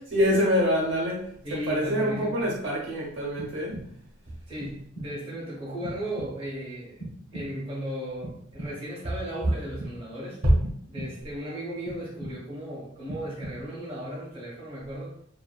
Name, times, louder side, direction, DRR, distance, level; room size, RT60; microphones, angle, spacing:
voice 1, 0.1-3.8 10.4-10.5, equal, 70° right, -4 dB, 0.8 m, -25 dB
voice 2, 1.4-2.5 4.5-7.0 7.3-10.4 10.9-15.2, equal, 30° right, -6 dB, 0.8 m, -36 dB
sound 1, 3.4-4.2 4.6-5.3 5.8-6.6 7.0-7.8 8.2-9.0 9.5-10.2 10.6-11.4 11.8-12.7 13.1-13.9, right 1 dB, 50° left, 0.7 m, -41 dB
2.5 x 2.5 x 2.2 m, 0.63 s
head